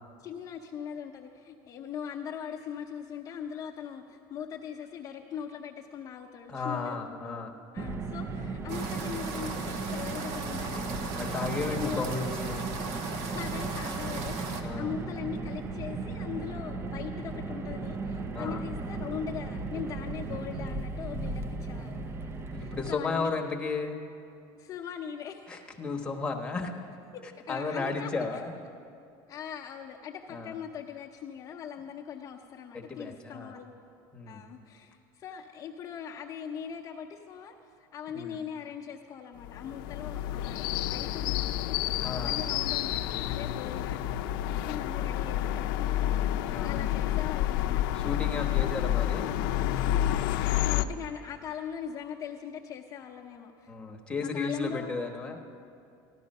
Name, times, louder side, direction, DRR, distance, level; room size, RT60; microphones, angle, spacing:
voice 1, 0.2-7.3 7.7-12.0 13.3-23.3 24.6-25.5 27.1-28.1 29.3-33.7 34.3-48.1 49.7-53.7 54.2-55.0, left 8 dB, 30° left, -3 dB, 0.7 m, -41 dB
voice 2, 6.5-7.5 11.2-12.7 14.6-14.9 18.3-18.6 22.5-24.0 25.5-26.7 27.5-28.5 30.3-30.5 32.7-33.5 34.1-34.5 38.1-38.4 42.0-42.4 46.4-46.8 47.9-49.3 53.7-55.4, left 4 dB, 10° left, 0 dB, 1.1 m, -34 dB
Car, 7.8-23.0, right 3 dB, 20° right, 0.5 m, -36 dB
sound 1, 8.7-14.6, right 3 dB, 65° right, 1.2 m, -38 dB
sound 2, 39.4-50.8, left 12 dB, 80° left, 0.5 m, -29 dB
14.0 x 12.0 x 5.4 m, 2.5 s
cardioid pair, 145°, 11 cm